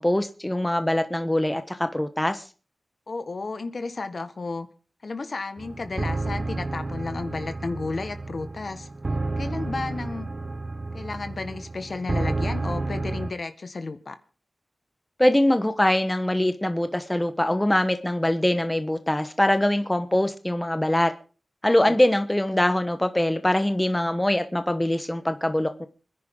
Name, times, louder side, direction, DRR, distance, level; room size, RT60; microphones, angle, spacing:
voice 1, 0.0-2.4 15.2-21.1 21.6-25.9, left 1 dB, 15° left, 1.1 m, -23 dB
voice 2, 3.1-4.7 5.0-8.9 9.4-10.3 10.9-14.2 21.9-22.0, left 3 dB, 60° left, 1.6 m, -32 dB
sound 1, 5.6-13.3, right 2 dB, 45° right, 1.0 m, -31 dB
26.5 x 10.5 x 3.8 m
wide cardioid pair, 80°, 0 cm